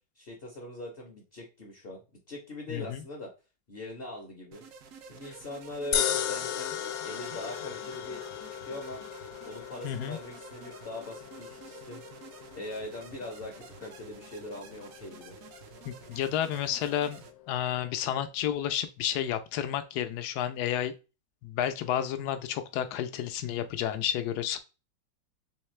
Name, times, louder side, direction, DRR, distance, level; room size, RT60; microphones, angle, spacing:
voice 1, 0.2-3.3 3.7-4.6 5.0-6.8 7.0-9.0 9.4-12.0 12.5-15.4, left 1 dB, 45° left, 0.8 m, -41 dB
voice 2, 2.7-3.0 9.8-10.2 15.8-20.9 21.4-24.6, left 10 dB, 75° left, 1.0 m, -31 dB
sound 1, 4.5-17.3, right 6 dB, 70° right, 0.8 m, -50 dB
sound 2, 5.9-18.3, left 10 dB, 90° left, 1.3 m, -38 dB
3.6 x 3.2 x 3.1 m
omnidirectional pair, 1.9 m